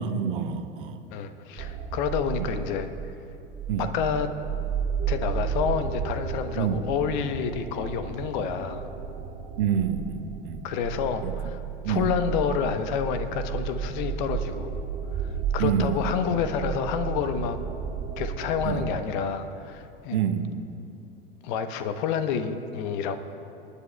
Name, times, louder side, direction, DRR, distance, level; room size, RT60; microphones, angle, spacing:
voice 1, 0.0-1.0 2.4-2.5 3.7-3.9 6.6-6.8 9.6-10.7 11.2-11.4 11.8-12.2 15.6-16.4 18.6-18.9 20.1-20.6, right 8 dB, 65° right, 8 dB, 0.9 m, -27 dB
voice 2, 1.1-2.9 3.8-4.3 5.1-8.9 10.6-11.6 11.9-14.7 15.1-17.6 18.2-20.2 21.4-23.2, left 7 dB, 55° left, 9 dB, 1.0 m, -29 dB
sound 1, 1.6-19.0, right 7 dB, 35° right, 2.4 m, -33 dB
27.5 x 9.9 x 2.3 m, 2.8 s
figure-of-eight pair, 80°, 29 cm